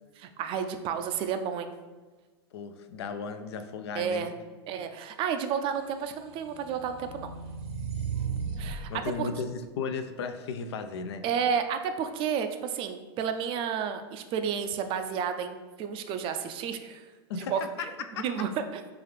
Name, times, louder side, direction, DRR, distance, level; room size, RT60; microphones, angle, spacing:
voice 1, 0.2-1.7 3.9-4.3 4.7-7.3 8.6-8.9 9.2-9.3 11.2-17.1 17.3-18.8, right 7 dB, 40° right, 8 dB, 0.4 m, -31 dB
voice 2, 2.5-4.3 8.9-11.2 17.3-17.5 18.2-18.3, left 5 dB, 80° left, 8 dB, 0.4 m, -35 dB
sound 1, 5.9-8.8, right 6 dB, 70° right, 0.7 m, -35 dB
4.7 x 2.4 x 3.3 m, 1.3 s
hypercardioid pair, 115°, 14 cm